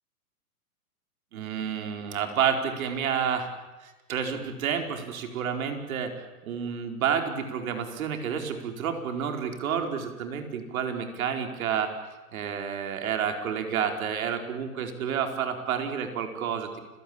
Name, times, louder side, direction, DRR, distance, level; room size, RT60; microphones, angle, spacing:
voice 1, 1.3-3.5 3.8-6.1 6.4-11.9 12.3-16.8, right 7 dB, 60° right, 5 dB, 4.5 m, -30 dB
29.5 x 17.5 x 8.8 m, 1.2 s
hypercardioid pair, 140°, 46 cm